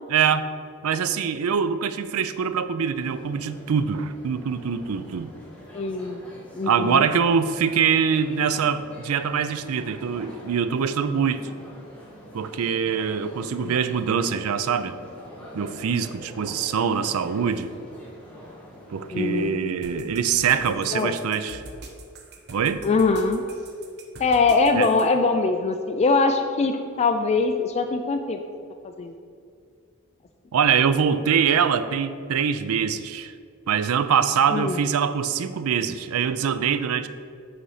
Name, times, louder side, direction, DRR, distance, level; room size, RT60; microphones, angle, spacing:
voice 1, 0.1-0.5 0.8-5.3 6.6-11.5 12.3-15.0 15.5-17.7 18.9-21.6 22.5-22.8 24.7-24.9 30.5-33.3 33.7-37.1, right 7 dB, 75° right, 12 dB, 0.4 m, -24 dB
sound 1, 2.9-19.5, equal, 5° left, 1.3 m, -44 dB
voice 2, 5.7-6.2 6.5-7.0 13.6-13.8 19.1-19.6 20.6-21.2 22.8-23.4 24.2-28.4 28.8-29.1 34.5-34.8, left 3 dB, 30° left, 6 dB, 0.3 m, -23 dB
sound 2, 19.8-25.1, right 3 dB, 50° right, 0.8 m, -43 dB
7.8 x 4.1 x 4.9 m, 2.3 s
head